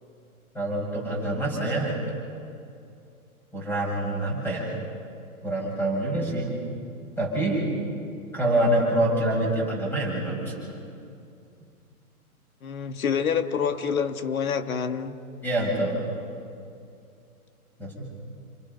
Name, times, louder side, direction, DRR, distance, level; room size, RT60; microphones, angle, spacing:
voice 1, 0.5-2.1 3.5-4.8 5.4-6.5 7.2-7.7 8.3-10.8 15.4-16.1 17.8-18.0, right 1 dB, 5° left, -2 dB, 6.9 m, -26 dB
voice 2, 12.6-15.2, left 7 dB, 70° left, 8 dB, 1.9 m, -27 dB
29.5 x 26.0 x 5.5 m, 2.5 s
hypercardioid pair, 150°, 44 cm